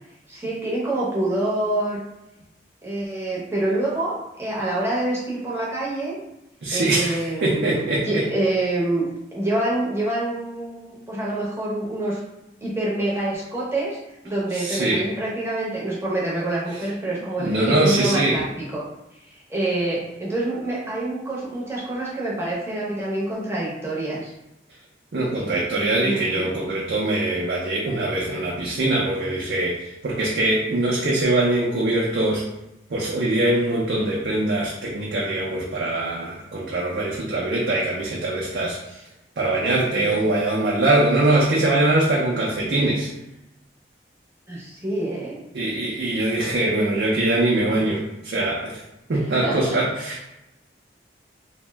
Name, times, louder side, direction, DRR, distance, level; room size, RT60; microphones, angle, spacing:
voice 1, 0.3-2.0 2.8-6.2 6.7-9.0 9.3-12.2 12.6-14.0 14.2-18.8 19.2-24.3 26.0-26.5 40.0-40.3 44.5-45.4 49.1-49.8, right 1 dB, 15° right, -6 dB, 0.7 m, -26 dB
voice 2, 6.6-8.2 14.5-15.0 17.4-18.4 25.1-32.5 32.9-39.0 39.4-43.1 45.5-48.8 49.1-50.4, right 2 dB, 70° right, -4 dB, 0.5 m, -22 dB
2.6 x 2.1 x 3.3 m, 0.92 s
head